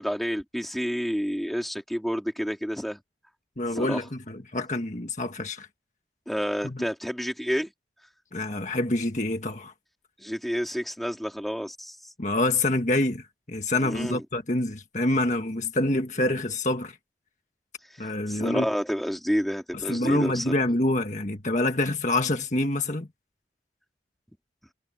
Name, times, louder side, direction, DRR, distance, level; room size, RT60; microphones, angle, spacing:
voice 1, 0.0-3.0 3.7-4.0 6.3-7.7 10.2-12.0 13.8-14.2 18.0-20.5, equal, ahead, 3.5 m, -29 dB
voice 2, 3.6-5.7 6.6-6.8 8.3-9.7 12.2-17.0 18.0-18.7 19.7-23.1, left 2 dB, 40° left, 1.6 m, -26 dB
head